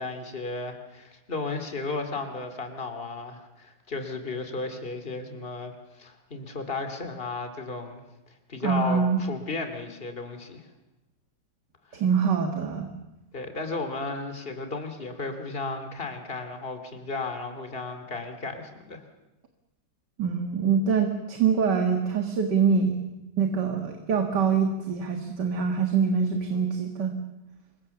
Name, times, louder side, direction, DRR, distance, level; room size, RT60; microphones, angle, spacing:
voice 1, 0.0-10.7 13.3-19.0, left 3 dB, 30° left, 6 dB, 2.7 m, -34 dB
voice 2, 8.6-9.2 11.9-12.9 20.2-23.0 23.4-27.1, right 6 dB, 75° right, 4 dB, 2.4 m, -24 dB
27.5 x 23.5 x 7.1 m, 0.97 s
omnidirectional pair, 1.8 m